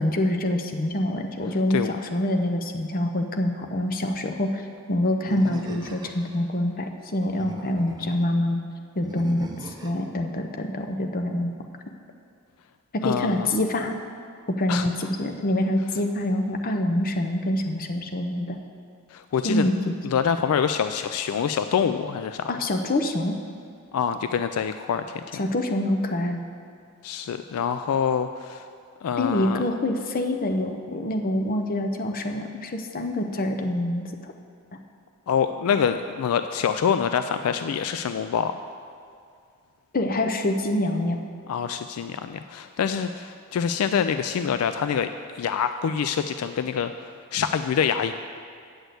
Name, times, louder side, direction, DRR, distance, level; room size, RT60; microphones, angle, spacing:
voice 1, 0.0-4.6 4.9-8.6 9.0-11.5 12.9-13.9 14.5-18.6 19.4-19.9 22.5-23.4 25.4-26.4 29.2-34.3 39.9-41.2, left 1 dB, 40° left, 5 dB, 0.7 m, -26 dB
Animal, 5.3-6.4 7.2-8.2 9.0-10.0, right 1 dB, 20° right, 0.8 m, -40 dB
voice 2, 13.0-13.5 14.7-14.9 19.1-19.7 20.0-22.5 23.9-25.4 27.0-28.6 29.0-29.6 35.3-38.5 41.5-45.1 45.3-46.9 47.3-48.1, left 7 dB, 70° left, 9 dB, 0.3 m, -25 dB
7.9 x 6.2 x 8.1 m, 2.3 s
head